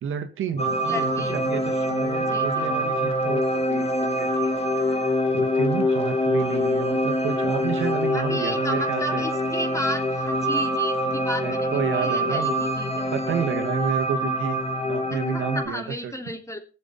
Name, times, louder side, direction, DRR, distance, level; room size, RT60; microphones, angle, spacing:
voice 1, 0.0-9.4 11.0-12.6 13.1-14.6 14.9-16.1, right 7 dB, 85° right, 7 dB, 1.5 m, -30 dB
sound 1, 0.6-15.7, equal, 30° left, 2.5 m, -25 dB
voice 2, 0.9-1.5 2.3-2.6 8.1-13.1 15.3-16.6, left 1 dB, 15° left, 5 dB, 2.9 m, -33 dB
19.0 x 7.2 x 4.2 m, 0.34 s
cardioid pair, 75°, 21 cm